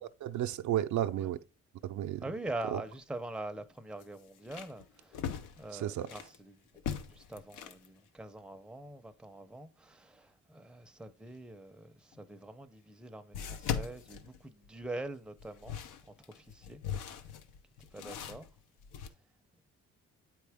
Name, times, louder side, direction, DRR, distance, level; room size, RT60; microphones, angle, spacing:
voice 1, 0.2-1.4 1.8-2.2 2.7-2.8 5.7-6.1, right 12 dB, 75° right, 0.5 m, -32 dB
voice 2, 2.2-6.8 7.1-15.8 16.0-16.8 17.9-18.5, right 2 dB, 5° right, 0.6 m, -44 dB
sound 1, 2.8-2.9 3.3-3.4 4.0-6.4 6.8-7.9 12.1-12.2 13.3-14.9 15.4-19.1, left 8 dB, 85° left, 0.7 m, -40 dB
8.3 x 4.6 x 3.4 m
cardioid pair, 90°, 30 cm